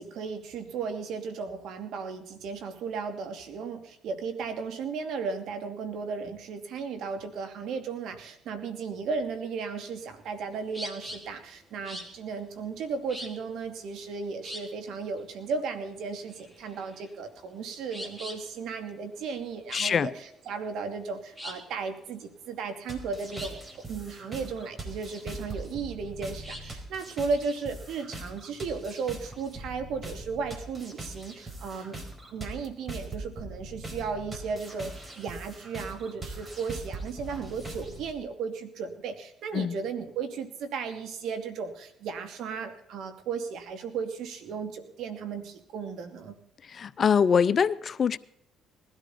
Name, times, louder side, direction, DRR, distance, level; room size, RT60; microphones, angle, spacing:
voice 1, 0.0-23.6 23.9-32.0 32.3-46.4, right 5 dB, 70° right, 2.6 m, -35 dB
sound 1, 9.9-26.8, equal, 10° right, 3.7 m, -45 dB
voice 2, 19.7-20.1 39.5-39.8 46.7-48.2, left 6 dB, 45° left, 0.6 m, -24 dB
sound 2, 22.9-38.1, right 2 dB, 25° right, 4.6 m, -41 dB
20.0 x 13.0 x 4.3 m
supercardioid pair, 80°, 0 cm